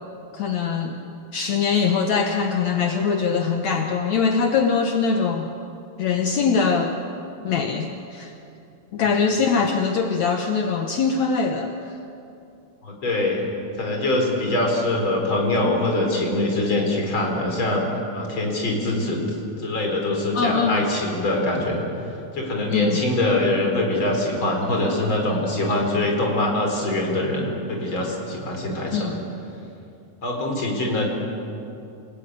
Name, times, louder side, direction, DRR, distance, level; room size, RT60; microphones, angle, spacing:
voice 1, 0.3-1.0 1.3-5.5 6.0-7.0 7.4-8.3 8.9-12.0 20.3-20.9 22.7-23.0 28.9-29.1, left 5 dB, 65° left, 4 dB, 2.2 m, -22 dB
voice 2, 12.8-13.4 13.8-17.9 18.1-19.2 19.6-21.8 22.3-29.2 30.2-31.1, left 2 dB, 35° left, 1 dB, 5.1 m, -23 dB
28.0 x 17.5 x 9.3 m, 2.7 s
omnidirectional pair, 3.9 m